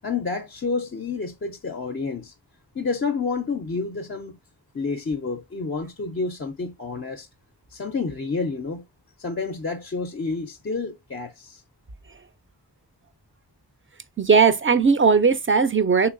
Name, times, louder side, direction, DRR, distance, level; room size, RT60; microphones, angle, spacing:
voice 1, 0.0-2.3 2.7-4.4 4.7-7.3 7.7-8.8 9.2-11.6, left 4 dB, 35° left, 0.4 m, -29 dB
voice 2, 14.2-16.1, right 5 dB, 30° right, 0.4 m, -18 dB
3.2 x 3.0 x 2.4 m
wide cardioid pair, 55°, 42 cm